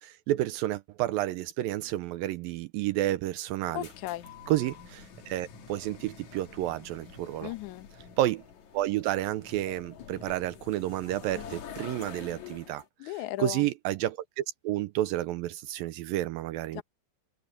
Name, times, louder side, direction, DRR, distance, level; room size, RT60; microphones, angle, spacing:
voice 1, 0.0-3.9 4.5-7.5 8.2-8.4 8.7-12.8 13.4-16.8, right 14 dB, 80° right, 2.2 m, -30 dB
sound 1, 3.5-12.9, left 7 dB, 55° left, 2.9 m, -47 dB
voice 2, 3.7-4.3 7.4-7.9 13.0-13.7 16.7-16.8, left 16 dB, 75° left, 1.8 m, -36 dB
omnidirectional pair, 4.5 m